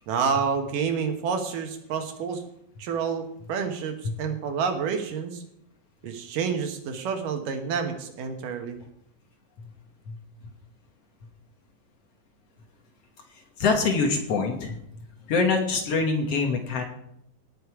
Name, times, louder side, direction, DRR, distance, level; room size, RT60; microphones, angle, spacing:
voice 1, 0.1-2.4 2.8-5.4 6.0-8.8, right 6 dB, 70° right, 6 dB, 2.7 m, -29 dB
voice 2, 13.6-14.8 15.3-16.8, left 4 dB, 60° left, 3 dB, 1.8 m, -24 dB
18.5 x 6.6 x 4.8 m, 0.74 s
omnidirectional pair, 4.2 m